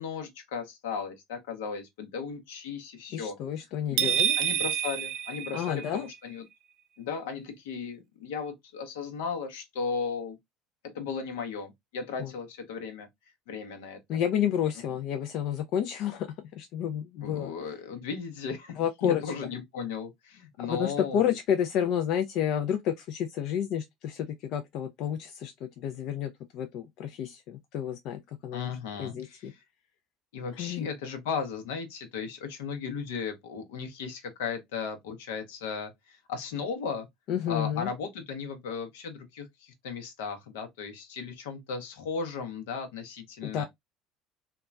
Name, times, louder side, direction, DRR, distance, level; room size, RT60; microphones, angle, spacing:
voice 1, 0.0-3.4 3.9-4.1 4.4-6.4 7.0-10.4 10.8-13.1 13.5-14.0 17.2-21.4 28.5-29.6 30.3-37.1 37.5-43.6, left 5 dB, 85° left, 0.8 m, -36 dB
voice 2, 3.1-4.4 5.5-6.1 12.2-12.3 14.1-16.3 16.5-17.5 18.8-19.3 20.7-28.7 29.0-29.5 30.6-30.9 37.3-37.9 43.4-43.6, left 9 dB, 65° left, 0.3 m, -30 dB
sound 1, 4.0-6.1, right 10 dB, 65° right, 0.3 m, -28 dB
2.9 x 2.2 x 2.3 m
supercardioid pair, 85°, 0 cm